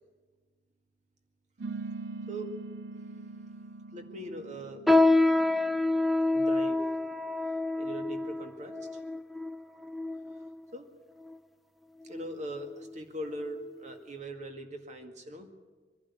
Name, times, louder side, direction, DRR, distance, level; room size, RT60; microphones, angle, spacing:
sound 1, 1.6-6.5, right 3 dB, 75° right, 0.6 m, -42 dB
voice 1, 3.9-4.8 6.3-6.8 7.5-9.0 10.7-10.9 12.0-15.5, right 1 dB, 40° right, 5 dB, 2.0 m, -41 dB
sound 2, 4.9-10.5 11.2-11.3 12.1-12.4 12.8-12.9 13.6-13.7, left 2 dB, ahead, 0.6 m, -27 dB
23.0 x 11.5 x 9.6 m, 1.4 s
head